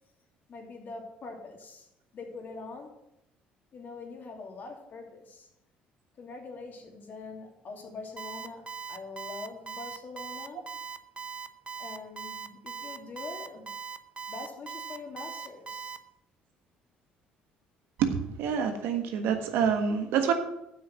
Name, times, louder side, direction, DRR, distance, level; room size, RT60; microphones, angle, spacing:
voice 1, 0.5-1.9 2.1-2.9 3.7-5.5 6.2-10.6 11.8-13.7 14.3-15.9, left 3 dB, 50° left, 2 dB, 2.9 m, -43 dB
Alarm, 8.2-16.0, right 6 dB, 30° right, 0.8 m, -39 dB
voice 2, 18.0-20.3, right 7 dB, 75° right, 6 dB, 1.5 m, -27 dB
8.0 x 6.3 x 7.7 m, 0.83 s
supercardioid pair, 70°, 4 cm